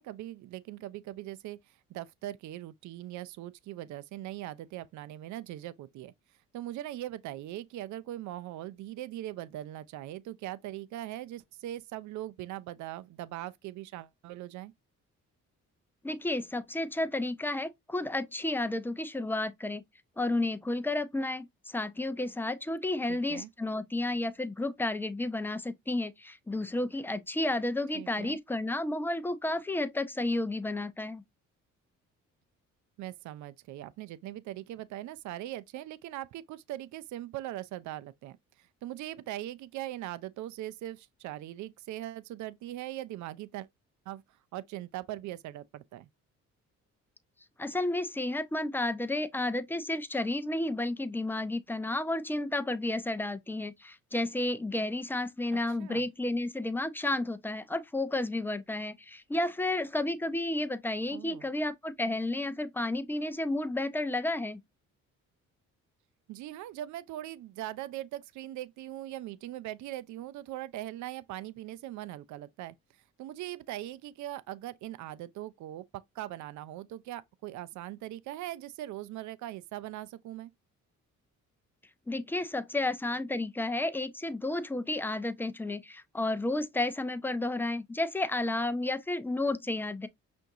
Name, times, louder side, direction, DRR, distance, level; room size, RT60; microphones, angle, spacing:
voice 1, 0.0-1.6 1.9-6.1 6.5-14.7 23.1-23.5 27.9-28.4 33.0-43.7 44.1-44.2 44.5-46.1 55.5-56.0 61.1-61.5 66.3-72.7 73.2-80.5, right 14 dB, 70° right, 0.5 m, -40 dB
voice 2, 16.0-19.8 20.2-31.2 47.6-64.6 82.1-90.1, left 2 dB, 5° left, 0.5 m, -32 dB
5.7 x 2.6 x 2.7 m
cardioid pair, 90°, 30 cm